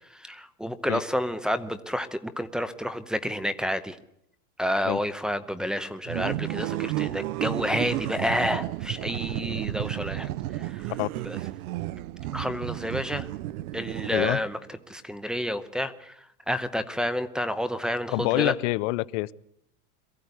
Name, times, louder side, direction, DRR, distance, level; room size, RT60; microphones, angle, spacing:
voice 1, 0.1-4.0 4.6-10.3 10.6-10.9 11.2-11.4 12.3-13.3 13.7-14.6 14.9-16.1 16.5-18.5, equal, ahead, 13 dB, 0.8 m, -29 dB
sound 1, 6.1-14.6, right 16 dB, 75° right, 0.8 m, -32 dB
voice 2, 18.1-19.3, left 21 dB, 55° left, 19 dB, 0.8 m, -26 dB
23.0 x 14.5 x 9.5 m, 0.77 s
supercardioid pair, 155°, 45 cm